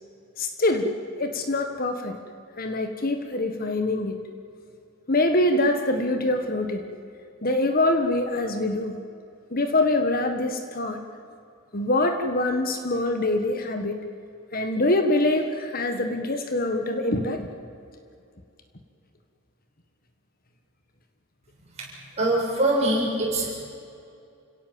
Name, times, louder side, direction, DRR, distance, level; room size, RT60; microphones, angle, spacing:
voice 1, 0.4-2.2 2.6-4.2 5.1-6.9 7.4-9.0 9.5-11.0 11.7-14.0 14.5-17.5, left 2 dB, 40° left, 6 dB, 1.5 m, -24 dB
voice 2, 22.2-23.5, right 1 dB, 30° right, -3 dB, 7.3 m, -23 dB
29.5 x 17.0 x 7.6 m, 2.6 s
head